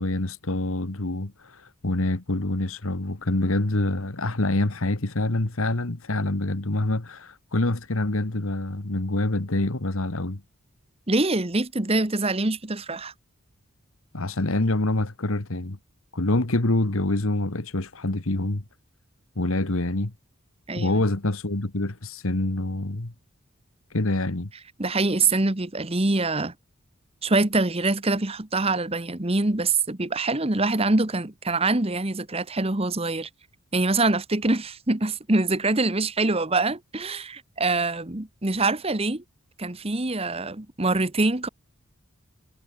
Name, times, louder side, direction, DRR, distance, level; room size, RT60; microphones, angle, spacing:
voice 1, 0.0-10.4 14.1-15.8 16.1-18.6 19.3-20.1 20.8-23.1 23.9-24.5, left 2 dB, 75° left, 1.7 m, -26 dB
voice 2, 11.1-13.1 20.7-21.0 24.8-26.5 27.2-33.3 33.7-39.2 39.6-41.5, right 2 dB, 25° right, 1.3 m, -24 dB
head